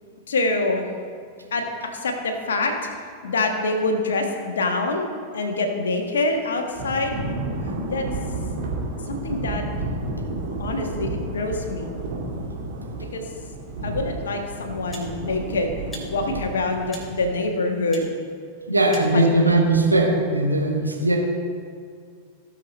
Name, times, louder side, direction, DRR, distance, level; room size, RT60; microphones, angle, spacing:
voice 1, 0.3-0.9 1.5-2.7 3.2-7.2 7.8-8.1 9.0-9.6 10.6-11.9 13.1-13.2 13.8-15.7 16.1-18.1 19.1-19.4, left 2 dB, 65° left, 4 dB, 1.5 m, -25 dB
Thunder / Rain, 6.7-17.3, right 2 dB, 50° right, 2.3 m, -31 dB
sound 1, 14.9-15.1 15.9-16.1 16.9-17.1 17.9-18.1 18.9-19.1, equal, 10° left, 3.2 m, -40 dB
voice 2, 18.7-21.2, right 2 dB, 85° right, 0 dB, 1.5 m, -19 dB
17.0 x 6.7 x 4.2 m, 2.2 s
figure-of-eight pair, 90°, 0 cm